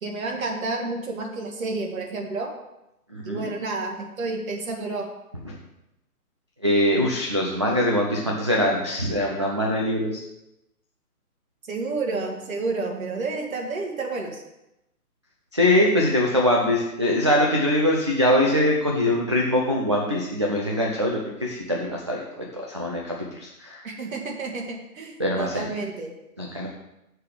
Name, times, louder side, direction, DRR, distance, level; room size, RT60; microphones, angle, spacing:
voice 1, 0.0-2.5 3.2-5.1 11.7-14.4 23.8-26.1, right 3 dB, 60° right, 1 dB, 2.0 m, -30 dB
voice 2, 3.1-3.5 5.4-5.6 6.6-10.2 15.5-23.8 25.2-25.7 26.4-26.7, left 1 dB, 20° right, -4 dB, 0.4 m, -23 dB
6.7 x 5.0 x 6.5 m, 0.89 s
hypercardioid pair, 145°, 45 cm